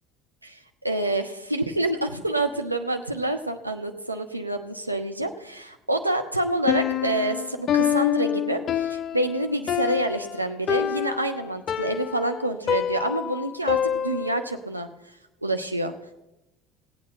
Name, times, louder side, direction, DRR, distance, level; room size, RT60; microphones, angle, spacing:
voice 1, 0.4-14.9 15.4-15.9, right 1 dB, 85° right, 6 dB, 0.6 m, -27 dB
Piano, 6.7-14.5, left 9 dB, 40° left, 0.3 m, -27 dB
16.5 x 8.5 x 4.3 m, 0.94 s
figure-of-eight pair, 60°, 0 cm